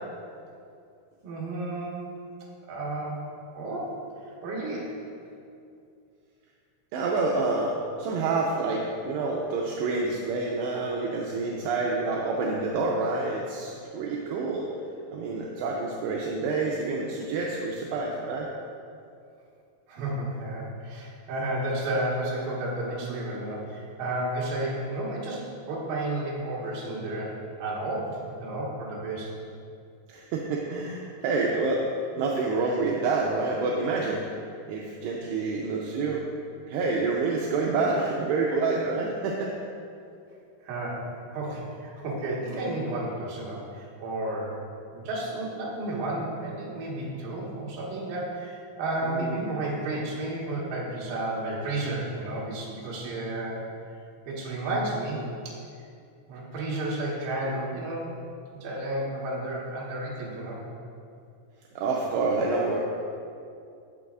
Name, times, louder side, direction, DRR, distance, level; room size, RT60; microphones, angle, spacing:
voice 1, 1.2-2.1 2.7-3.2 3.5-3.9 4.2-5.0 19.9-29.3 40.6-44.6 44.9-53.6 54.2-55.2 55.4-55.6 56.3-58.1 58.5-60.6, right 1 dB, 60° right, -5 dB, 2.8 m, -32 dB
voice 2, 6.9-14.7 15.1-18.5 30.1-31.9 32.2-34.3 34.7-36.3 36.7-39.6 49.0-49.5 61.8-62.8, right 3 dB, 80° right, -2 dB, 2.6 m, -28 dB
15.5 x 6.1 x 2.4 m, 2.5 s
omnidirectional pair, 5.2 m